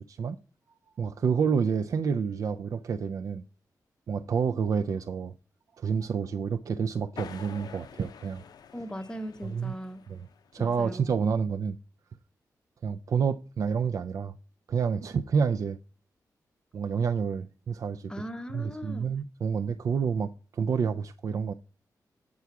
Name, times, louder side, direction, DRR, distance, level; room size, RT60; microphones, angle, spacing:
voice 1, 1.0-3.4 4.1-5.3 5.8-8.4 9.4-9.8 10.1-10.3 10.5-11.8 12.8-14.4 14.7-15.8 16.7-18.1 18.5-21.5, right 6 dB, 55° right, 0.4 m, -29 dB
sound 1, 7.2-10.6, left 7 dB, 80° left, 0.5 m, -47 dB
voice 2, 8.7-10.0 10.6-11.0 18.1-19.1, equal, 10° left, 0.7 m, -39 dB
8.1 x 4.7 x 5.8 m
wide cardioid pair, 155°, 7 cm